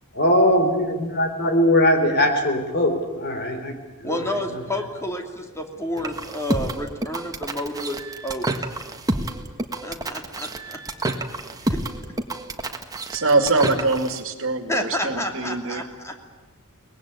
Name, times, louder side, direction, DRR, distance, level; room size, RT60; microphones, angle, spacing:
voice 1, 0.1-4.3, left 1 dB, 45° left, 6 dB, 3.5 m, -20 dB
voice 2, 4.0-8.5 9.8-10.8 11.6-11.8 14.7-16.1, left 1 dB, 15° left, 3 dB, 2.7 m, -30 dB
sound 1, 6.0-14.2, right 2 dB, 15° right, 1.6 m, -29 dB
voice 3, 13.1-15.8, right 3 dB, 65° right, 7 dB, 2.4 m, -23 dB
23.5 x 20.0 x 9.6 m, 1.2 s
head